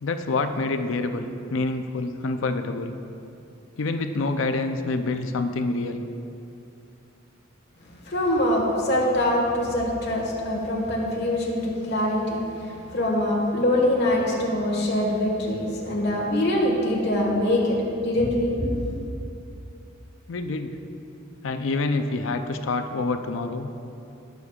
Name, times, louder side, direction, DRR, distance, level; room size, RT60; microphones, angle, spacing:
voice 1, 0.0-2.9 3.8-6.0 20.3-20.7 21.4-23.7, left 3 dB, 75° left, 7 dB, 0.5 m, -27 dB
voice 2, 8.1-18.7, left 1 dB, 55° left, -2 dB, 1.5 m, -24 dB
18.0 x 6.6 x 2.4 m, 2.7 s
head